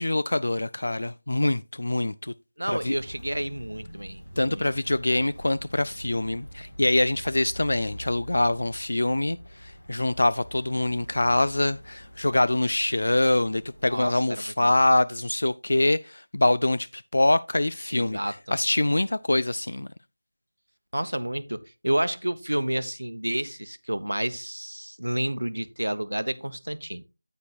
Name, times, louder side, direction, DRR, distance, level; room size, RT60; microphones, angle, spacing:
voice 1, 0.0-2.3 2.7-3.0 4.4-18.2 18.5-19.9, left 1 dB, 65° left, 0.3 m, -24 dB
voice 2, 2.6-4.7 13.9-14.7 17.9-18.6 20.9-27.0, right 1 dB, 90° right, 0.8 m, -30 dB
Walk footsteps, 2.7-13.9, equal, 90° left, 4.2 m, -45 dB
9.4 x 8.6 x 2.3 m
figure-of-eight pair, 170°, 0 cm